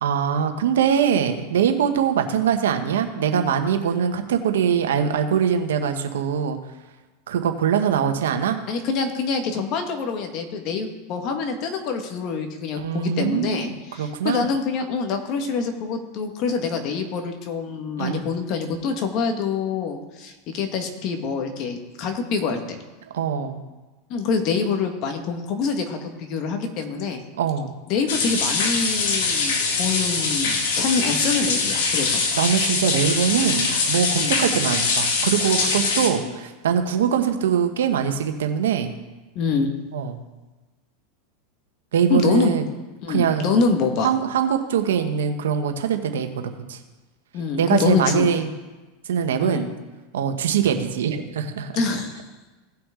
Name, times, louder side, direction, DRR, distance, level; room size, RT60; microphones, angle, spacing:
voice 1, 0.0-6.6 7.3-8.6 12.8-14.5 18.0-18.2 23.1-23.6 27.4-27.7 32.4-38.9 39.9-40.2 41.9-42.6 43.1-43.5 44.0-46.3 46.7-46.8 47.6-48.5 49.1-49.7 50.1-51.8, right 8 dB, 90° right, 6 dB, 1.1 m, -22 dB
voice 2, 8.7-22.8 24.1-27.2 27.9-32.2 34.1-34.3 39.3-39.7 42.1-42.6 43.0-44.1 47.3-48.3 49.4-49.6 51.7-52.2, left 5 dB, 50° left, 4 dB, 1.6 m, -25 dB
sound 1, 28.1-36.1, left 4 dB, 80° left, 1.7 m, -23 dB
17.5 x 5.9 x 3.8 m, 1.2 s
supercardioid pair, 125°, 0 cm